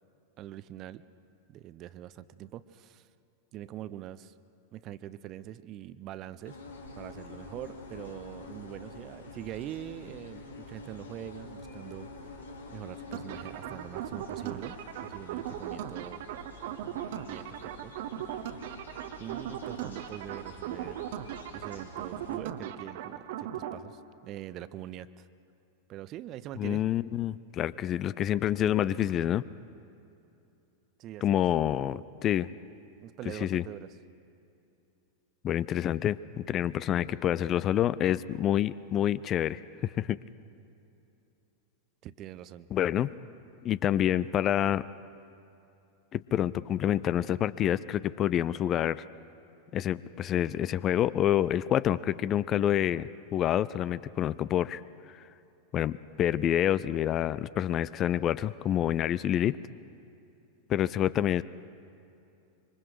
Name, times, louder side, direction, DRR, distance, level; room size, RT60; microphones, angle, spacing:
voice 1, 0.4-1.0 1.5-3.1 3.5-4.3 4.7-6.6 6.9-12.1 12.7-16.2 17.3-17.9 19.2-21.0 21.5-25.3 25.9-26.8 31.0-31.4 33.0-33.9 42.0-42.7, right 12 dB, 35° right, 16 dB, 0.7 m, -43 dB
sound 1, 6.4-22.4, left 2 dB, 75° left, 2.8 m, -48 dB
sound 2, 13.1-23.8, right 10 dB, 50° right, 1.0 m, -38 dB
voice 2, 26.6-29.4 31.2-32.5 33.4-33.6 35.4-40.2 42.7-43.1 43.6-44.8 46.1-49.0 49.7-54.8 55.1-55.2 55.7-59.6 60.7-61.4, left 11 dB, 30° left, 18 dB, 0.4 m, -27 dB
26.0 x 24.0 x 4.8 m, 2.7 s
figure-of-eight pair, 90°, 0 cm